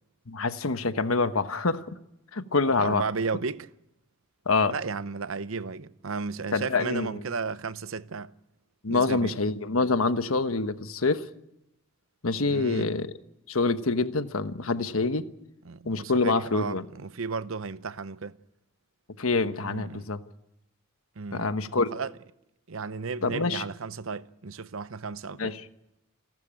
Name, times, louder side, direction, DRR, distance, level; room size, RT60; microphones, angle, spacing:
voice 1, 0.3-1.9 2.3-3.0 4.5-4.7 6.5-7.1 8.8-11.2 12.2-13.1 13.5-15.3 15.8-16.8 19.2-20.2 21.3-21.9 23.2-23.6 25.4-25.6, left 3 dB, 80° left, 1.2 m, -26 dB
voice 2, 2.8-3.7 4.7-8.3 8.9-9.3 12.5-12.9 15.6-18.4 19.6-20.1 21.2-21.5 21.7-22.1 22.7-25.5, right 4 dB, 70° right, 0.7 m, -34 dB
29.0 x 12.5 x 8.8 m
head